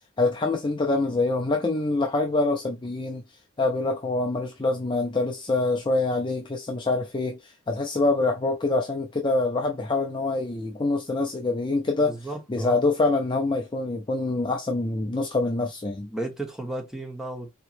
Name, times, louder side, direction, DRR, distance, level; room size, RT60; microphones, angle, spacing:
voice 1, 0.2-3.2 3.6-12.2 12.5-16.1, left 2 dB, 25° left, 0.5 m, -25 dB
voice 2, 12.0-12.8 16.1-17.5, right 1 dB, 5° right, 1.1 m, -34 dB
4.3 x 2.9 x 2.5 m
head